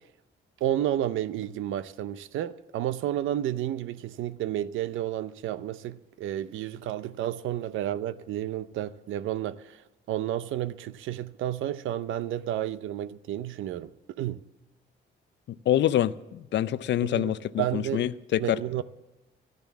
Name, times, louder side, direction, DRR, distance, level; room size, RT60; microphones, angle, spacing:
voice 1, 0.6-9.8 10.1-13.9 14.2-14.4 17.0-18.0 18.4-18.8, right 12 dB, 80° right, 0.6 m, -31 dB
voice 2, 15.5-18.8, left 12 dB, 65° left, 0.6 m, -26 dB
14.0 x 10.5 x 7.2 m
cardioid pair, 90°, 20 cm